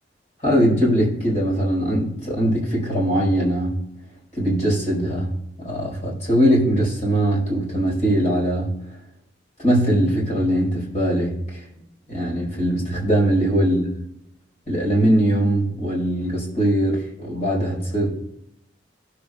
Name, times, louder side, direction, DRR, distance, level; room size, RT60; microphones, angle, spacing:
voice 1, 0.4-3.8 4.4-8.7 9.6-11.6 12.1-13.8 14.7-18.1, right 1 dB, 40° left, -4 dB, 4.5 m, -21 dB
20.5 x 7.0 x 2.3 m, 0.78 s
head